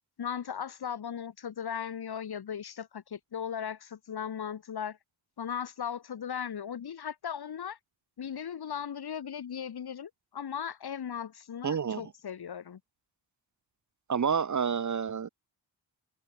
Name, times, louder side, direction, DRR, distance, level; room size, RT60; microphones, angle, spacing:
voice 1, 0.2-5.0 5.4-7.8 8.2-12.8, left 8 dB, 55° left, 2.1 m, -37 dB
voice 2, 11.6-12.0 14.1-15.3, right 6 dB, 40° right, 1.0 m, -29 dB
cardioid pair, 105°, 46 cm